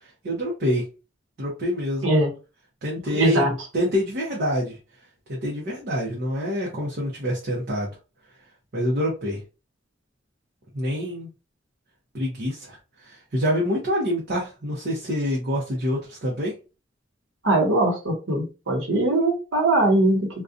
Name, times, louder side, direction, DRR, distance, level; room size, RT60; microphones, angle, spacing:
voice 1, 0.2-0.8 1.4-2.1 2.8-3.5 3.7-4.8 5.3-7.9 8.7-9.4 10.7-11.3 12.1-16.5, equal, 50° right, -4 dB, 0.7 m, -26 dB
voice 2, 3.1-3.5 17.4-20.3, right 1 dB, 90° right, 1 dB, 1.0 m, -21 dB
2.5 x 2.2 x 2.5 m, 0.31 s
head